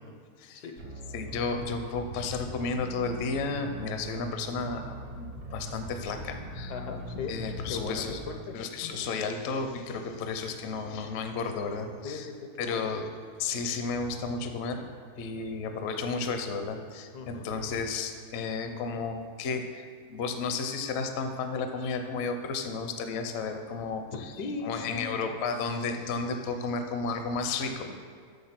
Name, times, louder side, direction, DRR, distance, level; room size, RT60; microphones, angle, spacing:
voice 1, 0.6-0.9 6.7-7.3 7.7-8.6 8.8-8.9 12.0-12.9 17.1-17.5 24.1-25.3, left 4 dB, 80° left, 4 dB, 1.3 m, -38 dB
sound 1, 0.8-8.4, right 1 dB, 85° right, 1.8 m, -41 dB
voice 2, 1.1-6.8 7.3-8.2 8.5-12.3 12.6-13.1 13.4-24.3 24.6-27.9, left 4 dB, 55° left, 6 dB, 0.8 m, -33 dB
6.8 x 6.6 x 5.8 m, 2.1 s
omnidirectional pair, 1.7 m